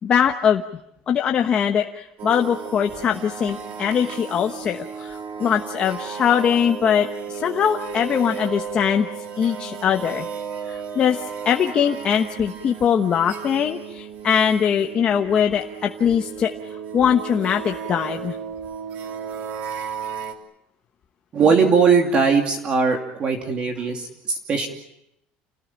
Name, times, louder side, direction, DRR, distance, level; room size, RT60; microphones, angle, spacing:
voice 1, 0.0-0.6 1.1-9.1 9.4-10.3 10.7-16.5 16.9-18.4, left 8 dB, 30° left, 3 dB, 1.2 m, -21 dB
sound 1, 2.2-20.3, right 7 dB, 45° right, 2.9 m, -34 dB
voice 2, 21.3-24.7, right 5 dB, 30° right, 3 dB, 2.7 m, -19 dB
29.5 x 19.0 x 9.0 m, 0.80 s
cardioid pair, 175°, 4 cm